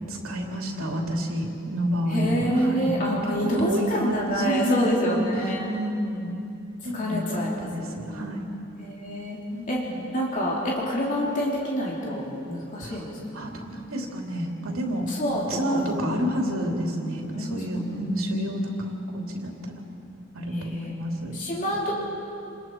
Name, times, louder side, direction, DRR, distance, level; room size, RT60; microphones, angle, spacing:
voice 1, 0.1-6.4 6.8-8.5 9.5-10.0 12.8-15.1 15.5-19.7 20.3-21.8, equal, 90° right, 0 dB, 3.1 m, -29 dB
voice 2, 2.1-5.7 6.9-8.4 8.8-9.4 9.7-9.8 10.1-13.1 13.4-13.5 15.1-16.0 17.3-17.6 17.9-18.0 20.5-20.9 21.3-21.9, equal, 35° left, -4 dB, 3.1 m, -27 dB
28.5 x 20.5 x 4.7 m, 2.7 s
head